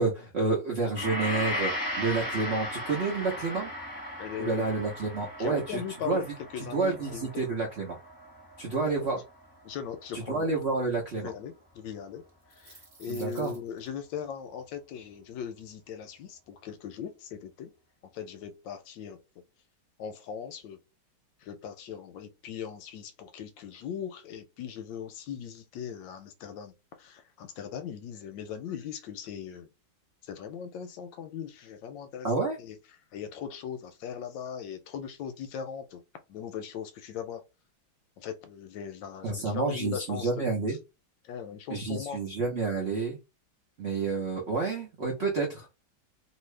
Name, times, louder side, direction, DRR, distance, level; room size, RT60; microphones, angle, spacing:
voice 1, 0.0-1.7 2.0-3.7 4.4-6.2 6.6-8.0 8.6-9.2 10.1-11.3 13.1-13.5 32.2-32.5 39.2-40.8 41.7-43.2 43.8-45.8, right 3 dB, 80° right, 0.5 m, -29 dB
Gong, 1.0-9.4 9.7-9.9, left 1 dB, 5° left, 1.1 m, -37 dB
voice 2, 4.2-4.6 5.4-6.3 6.5-7.4 9.6-10.5 11.2-12.2 12.5-17.7 18.0-19.2 20.0-20.8 21.4-26.7 27.0-29.7 30.2-32.3 32.6-32.8 33.1-36.0 36.3-37.4 38.2-40.3 40.7-40.8 41.2-42.2, left 8 dB, 75° left, 1.2 m, -39 dB
sound 1, 12.3-13.9, right 2 dB, 30° right, 0.9 m, -52 dB
2.8 x 2.7 x 3.2 m
omnidirectional pair, 2.2 m